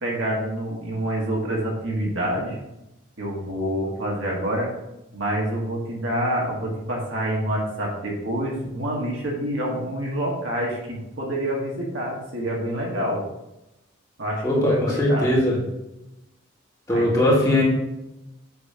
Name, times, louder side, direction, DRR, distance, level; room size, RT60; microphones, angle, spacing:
voice 1, 0.0-2.6 3.2-4.7 5.1-13.2 14.2-15.3 16.9-17.1, right 1 dB, 70° right, -3 dB, 2.0 m, -27 dB
voice 2, 14.4-15.6 16.9-17.6, left 1 dB, 20° left, -5 dB, 1.9 m, -20 dB
7.8 x 3.3 x 5.7 m, 0.92 s
head